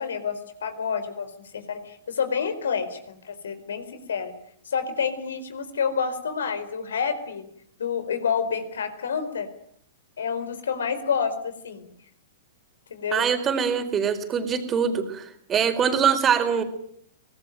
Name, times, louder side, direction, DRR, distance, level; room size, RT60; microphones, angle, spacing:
voice 1, 0.0-4.3 4.7-7.5 7.8-9.5 10.2-11.9 12.9-13.3, left 6 dB, 75° left, 11 dB, 4.4 m, -28 dB
voice 2, 13.1-16.6, right 7 dB, 25° right, 7 dB, 4.3 m, -23 dB
24.5 x 19.5 x 9.1 m, 0.67 s
figure-of-eight pair, 110°, 0 cm